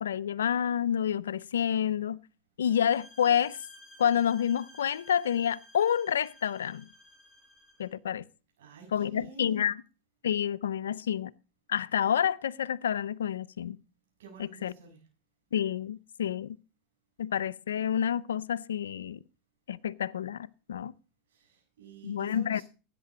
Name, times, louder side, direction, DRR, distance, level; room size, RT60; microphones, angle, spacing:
voice 1, 0.0-2.2 2.6-3.6 4.0-6.9 7.8-8.2 8.9-9.8 10.2-11.3 11.7-13.8 14.4-14.7 15.5-16.6 17.2-19.2 19.7-20.9 22.0-22.6, left 9 dB, 90° left, 0.5 m, -29 dB
sound 1, 2.6-7.9, left 1 dB, ahead, 5.4 m, -54 dB
voice 2, 8.6-9.7 14.2-15.0 21.3-22.6, right 6 dB, 80° right, 7.0 m, -50 dB
13.5 x 8.8 x 5.0 m
hypercardioid pair, 110°, 0 cm